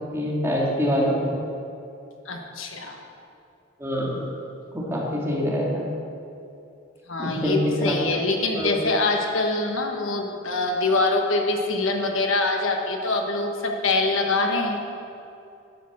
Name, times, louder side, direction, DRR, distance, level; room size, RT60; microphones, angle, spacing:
voice 1, 0.1-1.3 3.8-4.2 4.7-5.8 7.2-8.0 8.6-8.7, equal, 15° right, -4 dB, 2.0 m, -25 dB
voice 2, 2.3-3.0 7.1-14.8, left 2 dB, 80° left, 2 dB, 1.3 m, -24 dB
11.0 x 6.4 x 7.3 m, 2.6 s
head